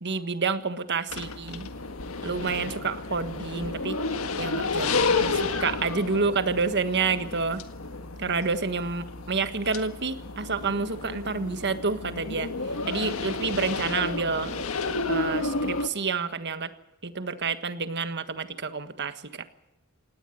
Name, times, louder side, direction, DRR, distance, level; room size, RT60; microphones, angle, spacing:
voice 1, 0.0-1.7 2.2-4.0 4.4-7.6 8.2-12.5 12.9-14.5 15.1-16.7 17.0-19.4, right 4 dB, 50° right, 11 dB, 1.5 m, -29 dB
sound 1, 1.1-15.9, left 3 dB, 70° left, 1.7 m, -31 dB
18.5 x 18.0 x 9.3 m, 0.92 s
head